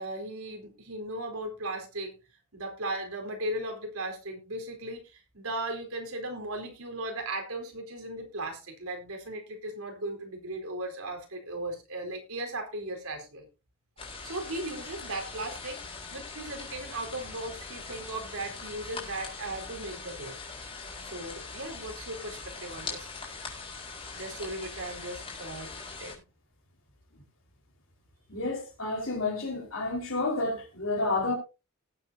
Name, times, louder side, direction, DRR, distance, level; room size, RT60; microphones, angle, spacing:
voice 1, 0.0-2.2 2.5-13.5 14.2-15.8 16.1-20.4 21.0-23.1 24.1-25.7 26.0-26.2, right 1 dB, 80° right, 4.2 m, -37 dB
sound 1, 14.0-26.1, left 4 dB, 25° left, 4.9 m, -42 dB
voice 2, 28.3-31.4, left 2 dB, 65° left, 4.7 m, -30 dB
19.0 x 8.5 x 2.8 m
head